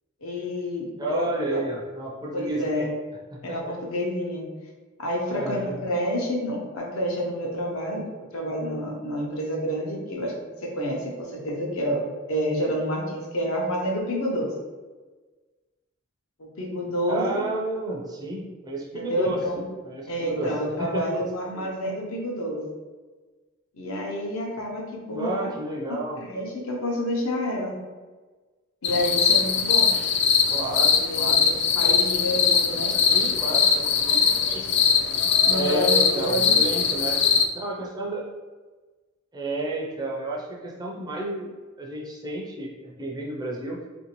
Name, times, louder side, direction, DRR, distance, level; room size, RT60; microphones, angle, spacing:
voice 1, 0.2-1.6 2.3-2.9 3.4-4.5 5.0-8.0 8.3-10.3 10.6-12.0 12.3-14.5 16.4-17.5 18.9-19.6 20.1-22.6 23.7-25.5 25.9-27.8 28.8-29.9 31.0-33.0 34.2-34.3 35.4-36.5, equal, 85° left, -1 dB, 0.7 m, -29 dB
voice 2, 1.0-2.9 3.3-3.6 5.3-5.8 17.1-19.4 19.8-20.5 20.8-21.1 21.5-21.6 25.1-26.2 30.5-31.4 33.1-34.8 35.5-37.2 37.5-38.2 39.3-41.5 41.8-43.8, right 2 dB, 20° right, -2 dB, 0.4 m, -31 dB
sound 1, 28.8-37.5, left 6 dB, 55° left, 0.3 m, -21 dB
3.1 x 2.6 x 2.9 m, 1.3 s
head